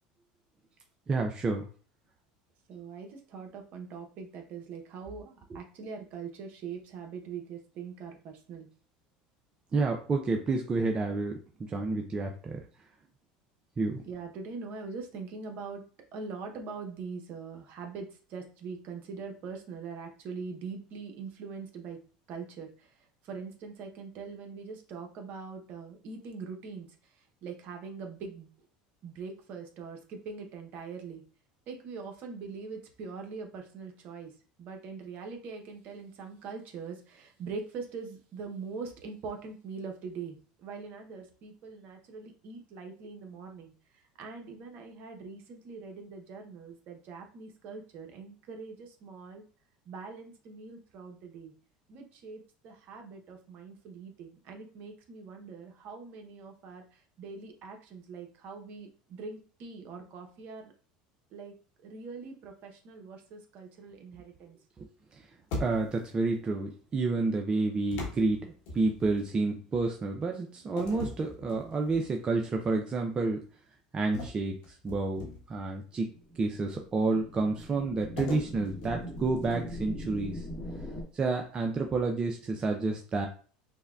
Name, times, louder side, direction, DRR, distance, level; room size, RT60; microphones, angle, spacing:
voice 1, 1.1-1.7 9.7-12.6 13.8-14.0 64.8-64.9 65.6-73.4 73.9-80.4 81.1-83.3, right 3 dB, 30° right, 3 dB, 0.5 m, -30 dB
voice 2, 2.7-8.7 14.0-15.8 16.1-22.0 22.3-28.5 29.0-31.2 31.7-34.3 34.6-49.4 49.9-51.5 51.9-60.7 61.3-61.5 61.8-64.6, right 5 dB, 55° right, 3 dB, 0.9 m, -42 dB
sound 1, 65.5-66.2 67.9-69.3 70.8-72.1 72.6-72.8 74.1-75.6 78.2-79.8, left 2 dB, 70° left, 1.4 m, -40 dB
sound 2, 76.1-81.0, equal, 15° left, 1.0 m, -41 dB
5.4 x 2.2 x 2.4 m, 0.40 s
supercardioid pair, 95°, 3 cm